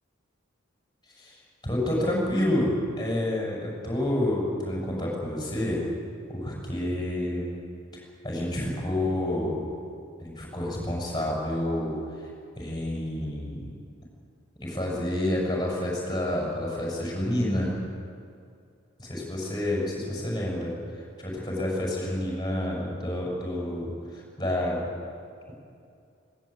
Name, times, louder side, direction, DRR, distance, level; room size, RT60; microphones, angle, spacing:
voice 1, 1.6-5.8 6.3-7.6 7.9-9.6 10.2-12.0 12.6-13.7 14.6-17.7 19.0-20.7 21.2-24.8, left 1 dB, 20° left, -3 dB, 7.6 m, -29 dB
20.0 x 19.0 x 9.1 m, 2.4 s
head